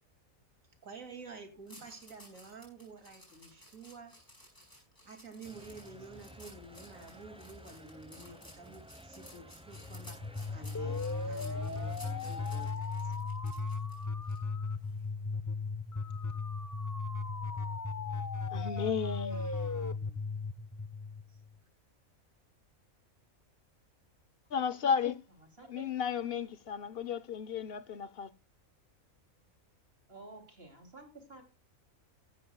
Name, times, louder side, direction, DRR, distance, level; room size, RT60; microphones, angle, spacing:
voice 1, 0.8-4.2 5.0-11.9 12.2-13.1 19.9-20.2 21.3-21.4, right 3 dB, 65° right, 3.0 m, -50 dB
sound 1, 1.7-14.4 14.8-15.1, equal, 15° left, 7.0 m, -56 dB
sound 2, 5.4-12.7, equal, 5° right, 0.9 m, -53 dB
sound 3, 9.7-21.6, left 4 dB, 30° left, 0.3 m, -36 dB
voice 2, 18.5-19.5 24.5-25.2 25.7-28.3, left 7 dB, 50° left, 0.9 m, -34 dB
voice 3, 25.6-25.9 30.1-31.4, right 3 dB, 45° right, 3.2 m, -51 dB
16.0 x 13.0 x 2.3 m
omnidirectional pair, 1.5 m